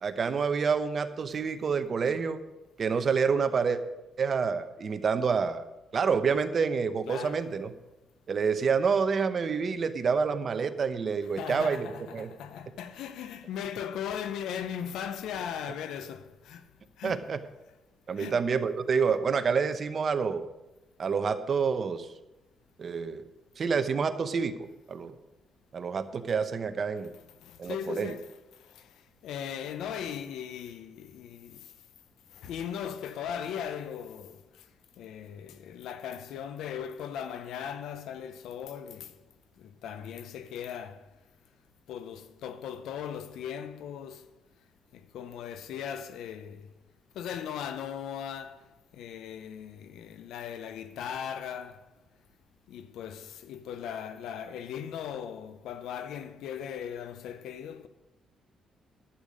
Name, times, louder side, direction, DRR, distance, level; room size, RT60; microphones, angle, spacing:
voice 1, 0.0-2.4 2.8-3.8 4.2-5.7 5.9-7.7 8.3-11.9 12.1-12.3 17.0-17.4 18.1-20.5 21.0-22.1 22.8-23.2 23.6-25.1 25.7-27.1 27.6-28.2, right 5 dB, 45° right, 0.8 m, -28 dB
voice 2, 7.1-7.5 11.4-16.7 17.0-17.2 18.2-18.4 27.3-31.7 32.3-34.7 35.0-39.2 39.6-41.2 41.9-44.3 44.9-46.7 47.1-51.9 52.7-57.9, left 8 dB, 80° left, 0.7 m, -38 dB
11.5 x 8.4 x 5.2 m
cardioid pair, 90°, 0 cm